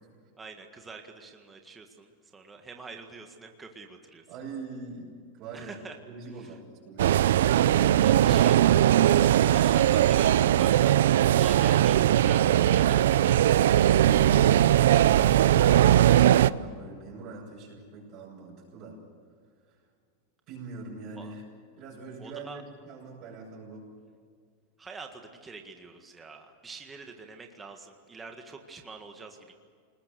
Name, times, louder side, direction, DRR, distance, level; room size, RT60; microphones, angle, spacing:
voice 1, 0.4-4.3 5.5-6.0 7.8-11.0 11.3-14.0 21.1-21.3 22.2-22.6 24.8-29.5, right 4 dB, 15° right, 3 dB, 1.7 m, -45 dB
voice 2, 4.3-5.8 6.0-7.3 15.0-19.0 20.5-21.4 21.8-23.9, right 4 dB, 40° right, -6 dB, 7.8 m, -43 dB
sound 1, 7.0-16.5, right 12 dB, 85° right, 0.5 m, -20 dB
28.0 x 20.5 x 6.9 m, 2.1 s
supercardioid pair, 155°, 0 cm